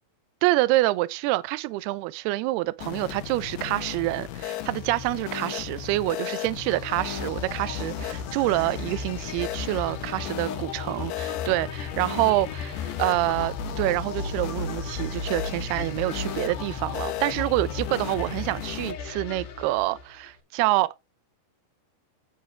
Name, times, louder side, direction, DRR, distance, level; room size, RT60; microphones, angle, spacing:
voice 1, 0.4-20.9, right 18 dB, 80° right, 2.5 m, -27 dB
sound 1, 2.8-18.9, left 11 dB, 90° left, 3.5 m, -36 dB
sound 2, 6.7-20.3, left 4 dB, 65° left, 4.4 m, -35 dB
9.6 x 9.5 x 3.4 m
omnidirectional pair, 5.0 m